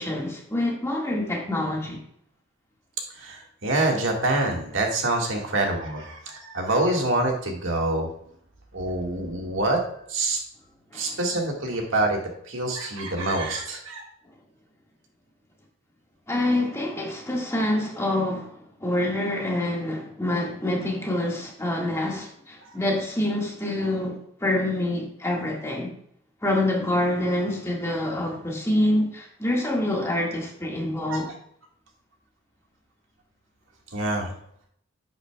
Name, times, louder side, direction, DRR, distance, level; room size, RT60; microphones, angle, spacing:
voice 1, 0.0-2.0 10.9-11.2 16.3-25.9 26.4-31.3, left 1 dB, 15° left, -2 dB, 1.8 m, -26 dB
voice 2, 3.1-8.1 8.7-9.8 10.1-10.4 10.9-12.2 12.4-14.0 22.6-22.7 23.8-23.9 31.1-31.2 33.9-34.3, right 2 dB, 70° right, 1 dB, 1.9 m, -26 dB
10.5 x 8.0 x 2.3 m, 0.68 s
head